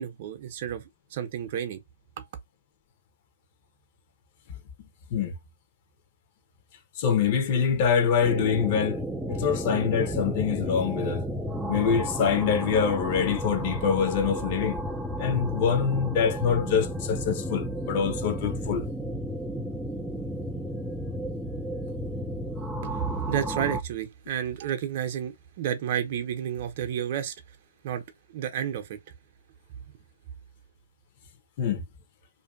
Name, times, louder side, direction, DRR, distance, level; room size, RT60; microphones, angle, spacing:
voice 1, 0.0-1.8 2.2-2.3 22.8-27.3 27.8-28.0 28.3-29.0, right 9 dB, 40° right, 0.7 m, -31 dB
voice 2, 7.0-9.0 9.3-11.3 11.7-14.8 15.2-18.8 31.6-31.8, left 7 dB, 40° left, 0.8 m, -25 dB
sound 1, 8.2-23.8, equal, ahead, 0.4 m, -32 dB
2.6 x 2.5 x 2.4 m
figure-of-eight pair, 130°, 0 cm